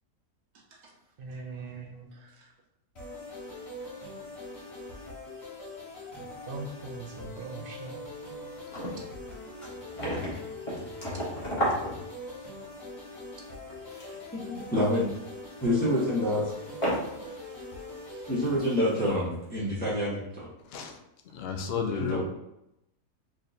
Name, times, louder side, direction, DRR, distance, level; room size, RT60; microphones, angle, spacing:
voice 1, 0.5-0.9 2.1-2.5 17.2-18.3, right 3 dB, 85° right, -3 dB, 1.4 m, -60 dB
voice 2, 1.2-2.1 6.2-8.0, right 3 dB, 60° right, 0 dB, 0.5 m, -41 dB
sound 1, 2.9-19.1, left 1 dB, 45° left, 1.6 m, -42 dB
sound 2, 6.6-7.3 7.6-7.7 8.1-8.2 8.4-12.7 13.6-14.3 14.7-14.9 16.0-16.1 16.7-17.4 17.8-17.9, equal, 25° left, 1.0 m, -33 dB
voice 3, 14.3-15.1 15.6-16.4 18.3-20.5 21.9-22.2, left 1 dB, 5° left, -9 dB, 1.4 m, -27 dB
voice 4, 21.3-22.2, left 6 dB, 70° left, 4 dB, 0.6 m, -32 dB
4.4 x 3.6 x 2.7 m, 0.86 s
omnidirectional pair, 1.6 m